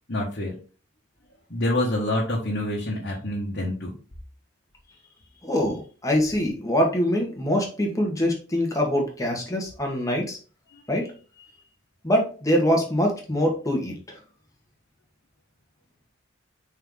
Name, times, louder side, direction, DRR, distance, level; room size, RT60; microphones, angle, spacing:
voice 1, 0.1-0.5 1.5-3.9, left 1 dB, 50° left, -4 dB, 1.6 m, -26 dB
voice 2, 5.4-10.4 10.9-11.1 12.0-14.2, equal, 15° left, 0 dB, 1.5 m, -24 dB
5.6 x 4.4 x 4.0 m, 0.37 s
head